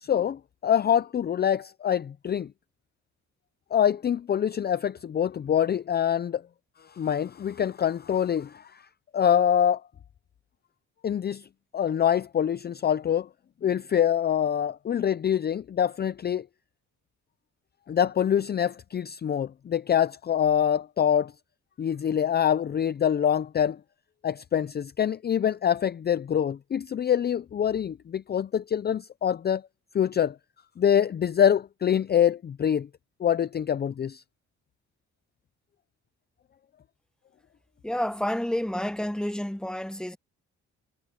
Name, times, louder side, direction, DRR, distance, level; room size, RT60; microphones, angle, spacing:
voice 1, 0.0-2.5 3.7-6.4 7.0-8.6 9.1-9.8 11.0-11.5 11.7-13.3 13.6-16.4 17.9-21.3 21.8-23.8 24.2-29.6 29.9-30.4 30.8-32.9 33.2-34.2, left 9 dB, 35° left, 0.5 m, -25 dB
voice 2, 37.8-40.2, left 1 dB, 5° left, 1.3 m, -29 dB
cardioid pair, 90°, 30 cm